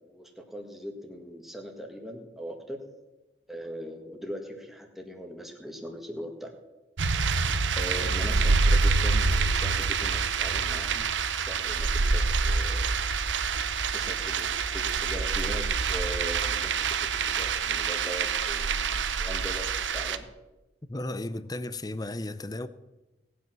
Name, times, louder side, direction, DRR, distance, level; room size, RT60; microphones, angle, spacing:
voice 1, 0.0-2.9 3.5-6.5 7.7-11.1 11.3-12.9 13.9-16.7 17.0-19.7 19.9-20.3, equal, ahead, 1.9 m, -40 dB
sound 1, 7.0-20.2, right 4 dB, 85° right, 0.8 m, -26 dB
voice 2, 20.9-22.7, left 1 dB, 20° left, 0.6 m, -34 dB
18.5 x 9.2 x 6.0 m
head